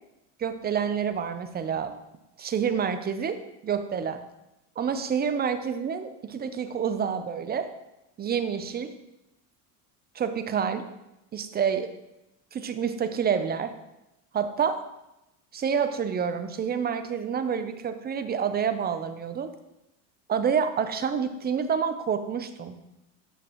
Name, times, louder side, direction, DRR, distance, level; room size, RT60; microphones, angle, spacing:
voice 1, 0.4-2.0 2.4-4.2 4.8-7.7 8.2-8.9 10.1-10.8 11.3-11.9 12.5-13.7 14.3-14.8 15.5-19.5 20.3-22.8, right 7 dB, 20° right, 9 dB, 0.5 m, -28 dB
8.2 x 6.1 x 3.0 m, 0.92 s
supercardioid pair, 100°, 45 cm